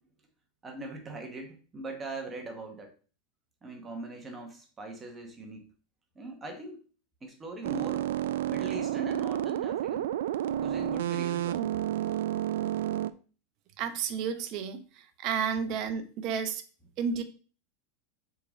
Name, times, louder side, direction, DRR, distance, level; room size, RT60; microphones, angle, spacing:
voice 1, 0.6-2.9 3.6-5.7 6.1-6.8 7.2-8.2 8.5-10.1 10.6-11.7, right 2 dB, 15° right, 3 dB, 1.1 m, -41 dB
sound 1, 7.6-13.1, right 12 dB, 80° right, 0.4 m, -30 dB
voice 2, 13.8-16.6 17.0-17.2, right 6 dB, 40° right, 8 dB, 0.8 m, -32 dB
6.5 x 3.7 x 4.0 m, 0.37 s
supercardioid pair, 165°, 0 cm